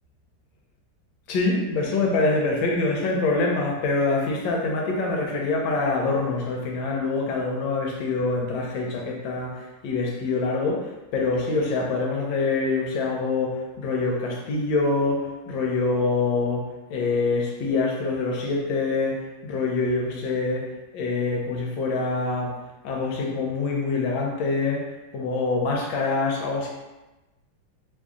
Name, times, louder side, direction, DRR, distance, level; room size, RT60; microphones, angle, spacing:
voice 1, 1.3-20.7 20.9-22.5 22.8-24.9 25.1-26.7, left 3 dB, 75° left, -1 dB, 1.3 m, -25 dB
3.2 x 2.6 x 3.5 m, 1.1 s
omnidirectional pair, 2.3 m